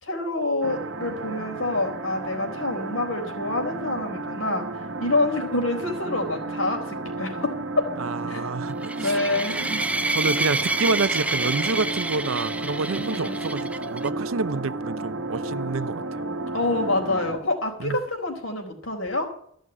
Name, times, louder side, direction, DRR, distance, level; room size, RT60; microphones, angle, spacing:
voice 1, 0.0-7.5 8.3-8.5 9.0-9.8 13.0-13.4 16.5-19.3, left 2 dB, 85° left, 4.1 m, -27 dB
sound 1, 0.6-17.4, right 2 dB, 65° right, 1.2 m, -33 dB
voice 2, 8.0-9.2 10.1-16.0 17.8-18.0, right 4 dB, 80° right, 0.6 m, -28 dB
sound 2, 8.8-14.1, right 2 dB, 5° right, 0.5 m, -28 dB
14.5 x 6.4 x 9.7 m
head